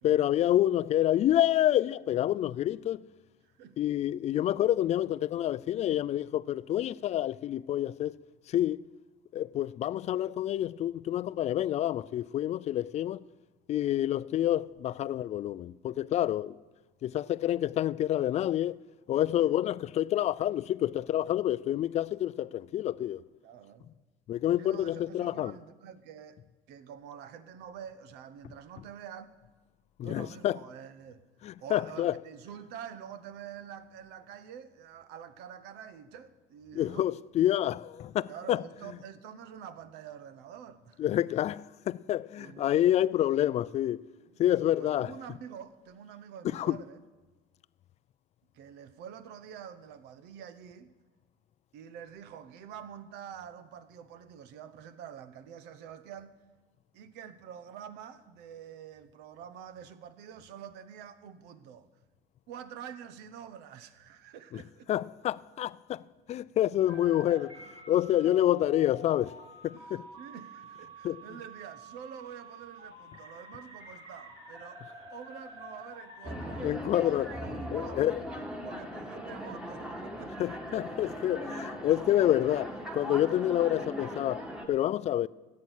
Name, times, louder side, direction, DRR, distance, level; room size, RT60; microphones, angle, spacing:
voice 1, 0.0-3.0 3.8-8.1 8.5-8.8 9.3-13.2 13.7-16.6 17.0-18.8 19.1-23.2 24.3-25.5 30.0-30.6 31.4-32.1 36.7-38.6 41.0-44.0 44.4-45.2 46.5-46.8 64.5-64.6 64.9-69.3 69.6-70.0 71.0-71.2 76.6-77.4 77.7-78.2 80.4-85.3, left 12 dB, 40° left, 0.4 m, -28 dB
voice 2, 3.4-3.8 19.3-19.5 23.4-23.9 24.6-26.4 26.7-29.3 30.0-31.2 31.6-37.1 38.3-41.2 42.4-42.7 43.2-43.3 44.2-47.0 48.5-50.9 51.7-56.4 56.9-61.9 62.5-64.9 68.2-68.3 69.7-74.8 75.1-80.4, right 8 dB, 75° right, 1.0 m, -47 dB
sound 1, 66.9-76.6, right 1 dB, 35° right, 3.9 m, -49 dB
sound 2, 76.2-84.7, equal, 5° right, 2.0 m, -39 dB
14.0 x 8.6 x 8.1 m
cardioid pair, 125°, 18 cm